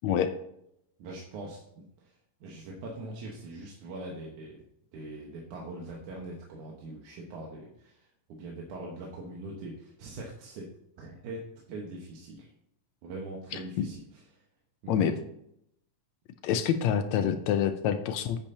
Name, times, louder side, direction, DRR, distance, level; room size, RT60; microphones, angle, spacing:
voice 1, 0.0-0.3 13.5-13.9 14.9-15.2 16.4-18.4, left 8 dB, 80° left, 8 dB, 1.6 m, -27 dB
voice 2, 1.0-2.1 2.4-4.6 4.9-10.7 11.0-12.5 13.0-14.4 14.8-15.2, right 2 dB, 70° right, -2 dB, 2.6 m, -42 dB
10.0 x 8.8 x 2.8 m, 0.76 s
omnidirectional pair, 3.8 m